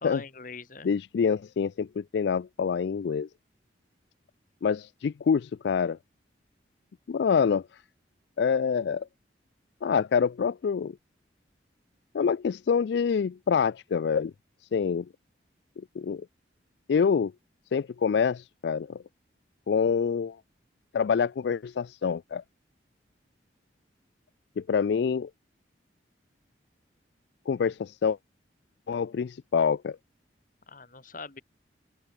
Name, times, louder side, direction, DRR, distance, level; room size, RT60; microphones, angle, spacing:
voice 1, 0.0-0.9 30.7-31.4, left 3 dB, 45° left, 1.9 m, -41 dB
voice 2, 0.8-3.3 4.6-6.0 7.1-7.6 8.4-9.1 9.8-11.0 12.1-14.3 14.7-15.1 15.8-16.3 16.9-17.3 17.7-19.0 19.7-20.4 20.9-22.4 24.6-25.3 27.5-28.2 28.9-30.0, left 6 dB, 65° left, 0.3 m, -26 dB
open air
head